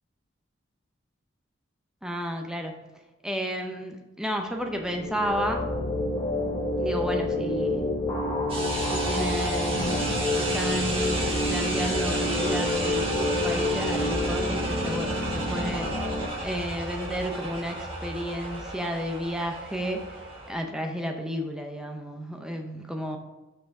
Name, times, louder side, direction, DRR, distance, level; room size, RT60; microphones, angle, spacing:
voice 1, 2.0-5.7 6.8-7.8 8.9-11.2 11.5-23.2, equal, 5° right, 3 dB, 0.6 m, -32 dB
sound 1, 4.7-16.3, left 1 dB, 15° left, 1.1 m, -28 dB
sound 2, 8.5-20.5, right 2 dB, 30° right, 1.8 m, -33 dB
Thunder, 9.7-14.9, left 2 dB, 85° left, 0.7 m, -41 dB
6.4 x 5.5 x 4.7 m, 1.1 s
head